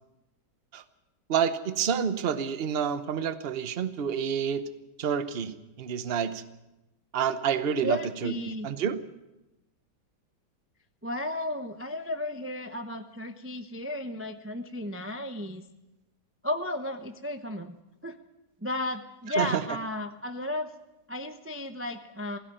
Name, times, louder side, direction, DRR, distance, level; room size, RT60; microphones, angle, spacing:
voice 1, 1.3-4.6 5.0-6.4 7.1-9.0 19.4-19.6, right 7 dB, 40° right, 12 dB, 1.0 m, -28 dB
voice 2, 7.8-8.7 11.0-15.6 16.4-17.8 18.0-18.2 18.6-20.7 21.1-22.4, left 1 dB, 15° right, 6 dB, 0.5 m, -34 dB
18.0 x 16.0 x 9.1 m, 0.99 s
omnidirectional pair, 1.9 m